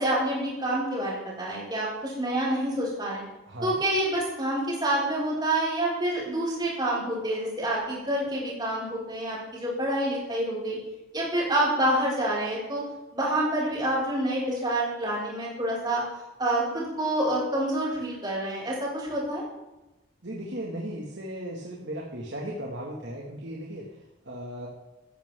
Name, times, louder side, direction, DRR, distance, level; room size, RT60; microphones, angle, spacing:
voice 1, 0.0-3.2 3.6-10.8 11.1-12.8 13.1-16.0 16.4-19.4, right 1 dB, 20° right, -7 dB, 6.0 m, -27 dB
voice 2, 20.2-23.9 24.3-24.7, right 1 dB, 55° right, -2 dB, 2.3 m, -36 dB
16.0 x 14.0 x 3.9 m, 0.99 s
head